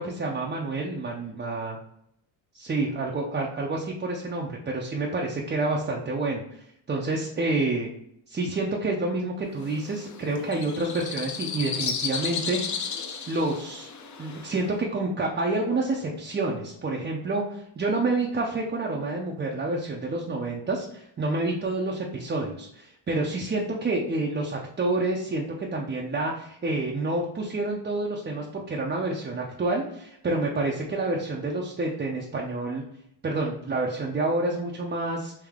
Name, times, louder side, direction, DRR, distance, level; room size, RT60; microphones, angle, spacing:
voice 1, 0.0-1.8 2.5-7.9 8.3-12.9 13.3-13.9 14.2-32.8 33.2-35.3, right 2 dB, 20° right, -1 dB, 0.4 m, -28 dB
sound 1, 9.6-14.7, left 6 dB, 35° left, 0.5 m, -34 dB
3.5 x 2.7 x 3.5 m, 0.75 s
cardioid pair, 90°, 50 cm